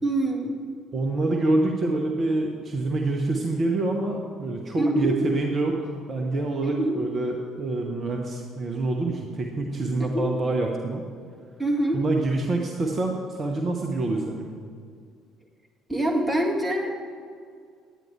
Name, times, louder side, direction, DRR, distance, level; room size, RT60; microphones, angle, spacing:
voice 1, 0.0-0.6 4.8-5.1 6.6-7.0 10.0-10.3 11.6-12.0 15.9-17.0, right 1 dB, 5° right, -3 dB, 2.1 m, -25 dB
voice 2, 0.9-11.0 11.9-14.6, right 2 dB, 35° right, 1 dB, 0.9 m, -26 dB
10.0 x 9.3 x 4.7 m, 2.1 s
figure-of-eight pair, 50°, 0 cm